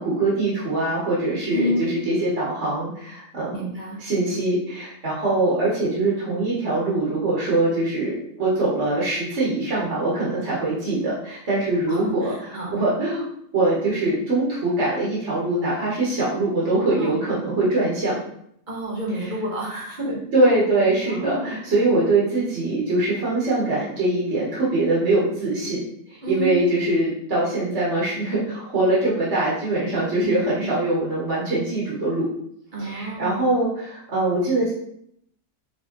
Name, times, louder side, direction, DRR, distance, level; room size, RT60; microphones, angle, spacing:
voice 1, 0.0-3.7 4.0-12.3 12.7-13.2 13.5-18.2 20.0-25.8 26.1-32.3 32.8-34.7, right 2 dB, 50° right, -7 dB, 1.4 m, -23 dB
voice 2, 1.5-1.9 3.5-4.0 11.9-12.8 17.0-17.2 18.7-20.1 21.1-21.6 26.2-26.5 30.2-30.7 32.7-33.5, equal, 35° right, -4 dB, 1.3 m, -30 dB
5.0 x 3.1 x 2.9 m, 0.71 s
omnidirectional pair, 1.6 m